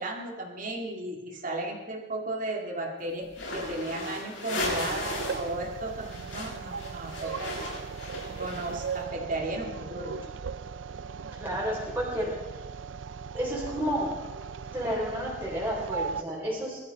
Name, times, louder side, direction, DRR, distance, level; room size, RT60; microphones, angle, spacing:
voice 1, 0.0-7.5 8.4-10.2, right 2 dB, 45° right, 1 dB, 2.3 m, -35 dB
sound 1, 3.3-5.5 5.8-8.9, left 2 dB, 90° left, 5.7 m, -35 dB
sound 2, 4.6-16.2, right 6 dB, 90° right, 0.5 m, -38 dB
voice 2, 11.3-12.3 13.3-14.2 14.7-16.8, equal, 10° right, -6 dB, 3.7 m, -31 dB
20.5 x 12.5 x 4.1 m, 1.2 s
head